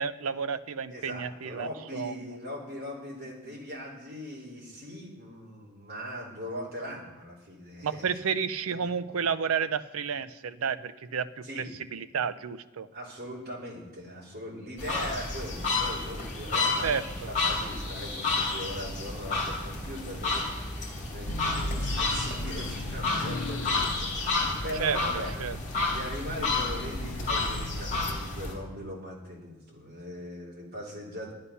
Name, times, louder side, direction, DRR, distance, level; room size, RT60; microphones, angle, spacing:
voice 1, 0.0-2.3 7.8-11.6 11.9-12.9 16.8-17.0 24.8-25.0 25.4-25.6, right 6 dB, 70° right, 13 dB, 0.5 m, -31 dB
voice 2, 0.9-8.2 11.4-11.7 12.9-25.3 25.8-31.3, equal, 45° right, -4 dB, 3.2 m, -40 dB
sound 1, 14.8-28.5, left 3 dB, 35° left, 2.6 m, -31 dB
sound 2, 21.2-28.1, left 2 dB, 90° left, 0.6 m, -37 dB
11.0 x 9.7 x 5.6 m, 1.2 s
head